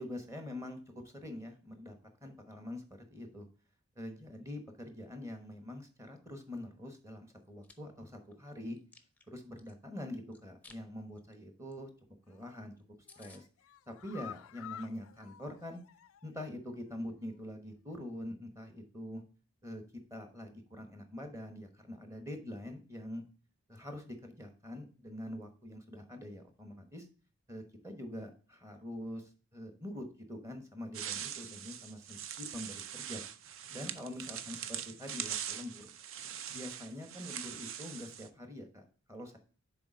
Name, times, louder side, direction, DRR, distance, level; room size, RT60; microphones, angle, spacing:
voice 1, 0.0-2.0 2.2-2.8 3.1-3.5 4.0-8.8 9.3-11.9 12.3-12.7 13.2-13.5 13.9-15.8 16.2-19.2 19.6-19.8 20.1-23.2 23.7-27.1 27.5-33.2 33.7-35.9 36.5-39.4, left 1 dB, 15° right, 5 dB, 1.1 m, -44 dB
Chewing mastication, 7.4-7.7 8.2-9.7 10.3-10.8 11.1-11.3 11.7-11.8 12.0-12.1 12.5-12.6 12.8-12.9 13.1-13.4, left 3 dB, 5° left, 0.6 m, -58 dB
sound 1, 12.3-12.7 13.0-16.4 16.8-16.9 17.2-17.3, left 10 dB, 65° left, 0.3 m, -51 dB
sound 2, 30.9-38.3, right 9 dB, 60° right, 0.6 m, -42 dB
6.9 x 4.1 x 5.1 m, 0.39 s
head